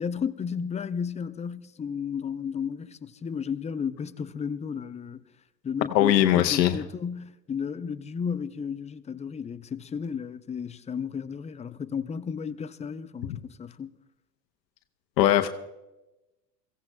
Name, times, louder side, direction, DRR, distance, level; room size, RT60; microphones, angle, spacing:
voice 1, 0.0-5.2 5.6-13.9, left 6 dB, 15° left, 0.5 m, -33 dB
voice 2, 5.9-6.8 13.3-13.4 15.2-15.5, left 12 dB, 75° left, 1.0 m, -21 dB
23.0 x 16.0 x 2.2 m
hypercardioid pair, 85°, 50 cm